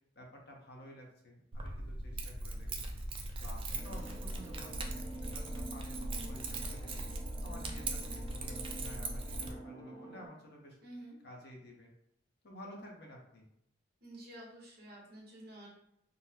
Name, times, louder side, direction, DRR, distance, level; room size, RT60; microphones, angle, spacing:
voice 1, 0.1-2.7 3.4-10.8 11.2-11.9 12.4-13.5, equal, 60° left, 0 dB, 0.8 m, -52 dB
Keys jangling, 1.5-9.5, right 2 dB, 30° right, 0.3 m, -40 dB
sound 1, 3.6-5.5 6.4-6.6, right 1 dB, 85° right, 0.7 m, -59 dB
sound 2, 3.7-10.3, right 1 dB, ahead, 0.7 m, -48 dB
voice 2, 10.8-11.1 14.0-15.7, right 1 dB, 55° right, -4 dB, 1.1 m, -50 dB
3.7 x 2.1 x 2.8 m, 0.76 s
head